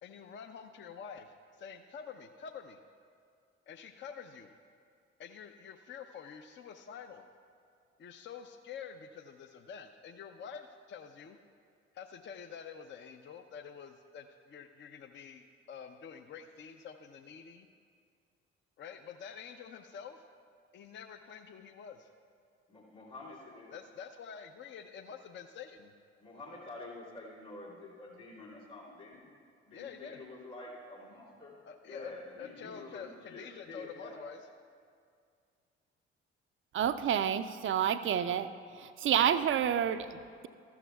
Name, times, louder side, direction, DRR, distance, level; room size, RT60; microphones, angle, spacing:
voice 1, 0.0-2.8 3.7-4.5 5.2-7.3 8.0-11.4 11.9-17.7 18.8-20.2 20.7-22.1 23.7-25.9 29.7-30.2 31.6-32.1 32.4-34.4, left 7 dB, 40° left, 7 dB, 0.5 m, -47 dB
voice 2, 22.7-23.7 26.2-29.3 29.7-31.5 31.8-34.2, left 2 dB, 80° left, -8 dB, 2.6 m, -48 dB
voice 3, 36.7-38.5 38.7-40.5, right 9 dB, 40° right, 11 dB, 0.5 m, -29 dB
13.5 x 12.0 x 2.3 m, 2.2 s
hypercardioid pair, 45°, 31 cm